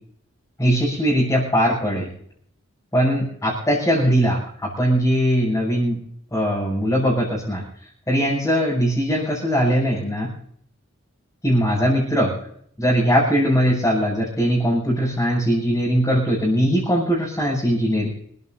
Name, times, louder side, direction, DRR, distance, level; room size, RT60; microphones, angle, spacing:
voice 1, 0.6-2.1 2.9-6.0 6.3-7.6 8.1-10.3 11.4-12.3 12.8-18.1, equal, 15° left, -7 dB, 7.6 m, -20 dB
28.0 x 15.5 x 2.7 m, 0.65 s
head